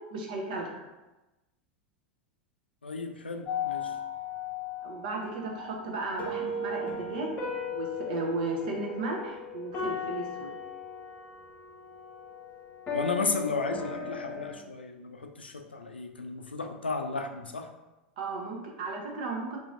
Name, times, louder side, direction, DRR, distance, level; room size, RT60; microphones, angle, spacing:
voice 1, 0.1-0.8 4.8-7.4 7.7-10.5 18.2-19.6, right 3 dB, 60° right, 0 dB, 0.8 m, -35 dB
voice 2, 2.8-4.0 12.9-17.7, left 3 dB, 85° left, 5 dB, 0.4 m, -34 dB
sound 1, 3.4-14.5, left 4 dB, 30° left, 0.9 m, -37 dB
3.0 x 2.7 x 3.7 m, 1.1 s
figure-of-eight pair, 85°, 5 cm